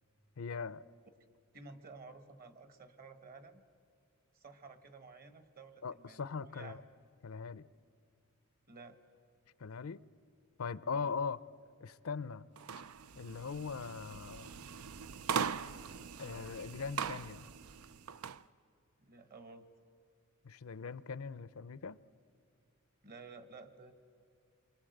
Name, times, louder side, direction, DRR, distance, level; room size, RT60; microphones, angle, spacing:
voice 1, 0.4-0.8 5.8-6.8 7.2-7.7 9.6-10.0 10.6-11.4 11.8-12.5 13.2-14.6 16.2-17.5 20.4-22.0, left 5 dB, 75° left, 0.6 m, -40 dB
voice 2, 1.5-3.6 4.3-6.8 8.7-9.0 10.8-11.1 19.0-19.7 23.0-23.9, right 4 dB, 45° right, 1.5 m, -53 dB
sound 1, 12.6-18.4, right 6 dB, 90° right, 0.6 m, -41 dB
29.0 x 24.0 x 7.9 m
head